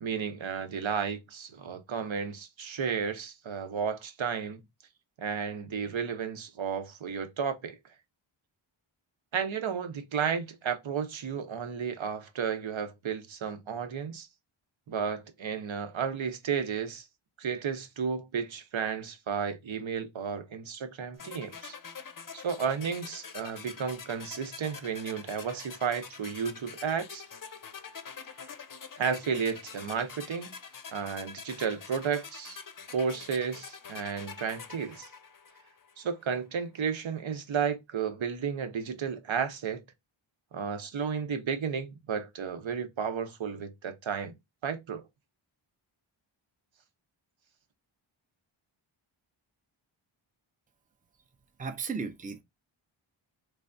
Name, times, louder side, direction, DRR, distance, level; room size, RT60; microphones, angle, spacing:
voice 1, 0.0-4.6 5.2-7.8 9.3-14.3 14.9-17.0 17.4-21.8 22.3-27.2 29.0-30.5 30.9-32.6 32.9-35.1 36.0-39.8 40.5-44.3 44.6-45.0, right 6 dB, 65° right, 0.8 m, -33 dB
sound 1, 21.2-36.1, left 6 dB, 40° left, 0.6 m, -46 dB
voice 2, 51.6-52.4, right 5 dB, 15° right, 0.5 m, -35 dB
3.4 x 3.2 x 2.5 m
wide cardioid pair, 110°, 50 cm